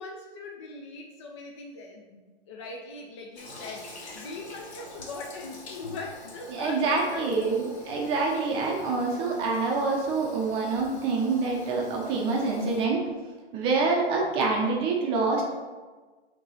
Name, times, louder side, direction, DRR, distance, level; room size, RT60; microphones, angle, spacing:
voice 1, 0.0-7.6, left 3 dB, 30° left, 1 dB, 0.4 m, -41 dB
Toilet flush, 3.4-12.9, left 1 dB, 75° left, 1.8 m, -46 dB
voice 2, 6.5-13.0 13.5-15.4, right 3 dB, 15° right, -1 dB, 0.7 m, -26 dB
5.8 x 3.0 x 5.6 m, 1.3 s
hypercardioid pair, 150°, 33 cm